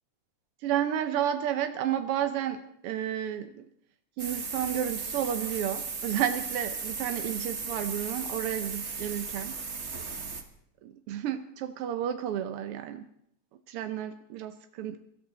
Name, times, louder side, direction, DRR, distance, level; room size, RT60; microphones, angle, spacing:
voice 1, 0.6-3.6 4.2-9.6 10.8-13.0 13.7-15.0, right 10 dB, 70° right, 8 dB, 1.4 m, -31 dB
sound 1, 4.2-10.4, right 4 dB, 45° right, 0.9 m, -36 dB
23.0 x 13.5 x 4.0 m, 0.72 s
omnidirectional pair, 3.3 m